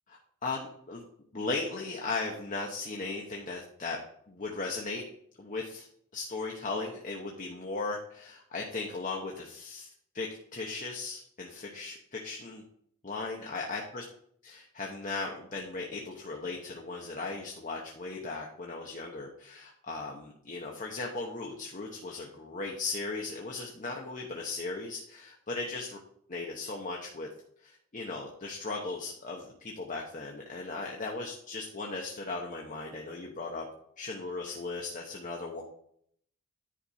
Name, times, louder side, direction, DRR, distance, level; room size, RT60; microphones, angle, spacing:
voice 1, 0.1-1.0 1.3-4.0 4.3-5.0 5.4-5.9 6.1-9.9 10.1-12.6 13.0-14.0 14.4-26.0 26.3-27.3 27.6-33.6 34.0-35.6, left 3 dB, 35° left, 0 dB, 0.9 m, -37 dB
10.0 x 5.1 x 4.3 m, 0.67 s
head